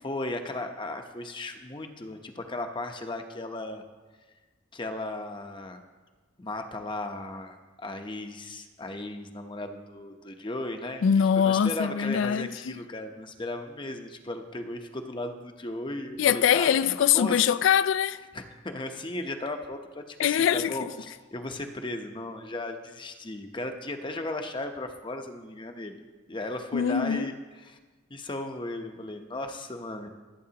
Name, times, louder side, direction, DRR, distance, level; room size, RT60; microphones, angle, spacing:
voice 1, 0.0-3.8 4.7-5.8 6.4-11.0 11.4-17.4 18.3-26.0 26.3-27.3 27.6-27.8 28.1-30.1, left 2 dB, 25° left, 0.8 m, -36 dB
voice 2, 11.0-12.8 16.2-18.2 20.2-20.8 26.7-27.3, left 8 dB, 70° left, 0.3 m, -23 dB
25.5 x 8.5 x 2.9 m
head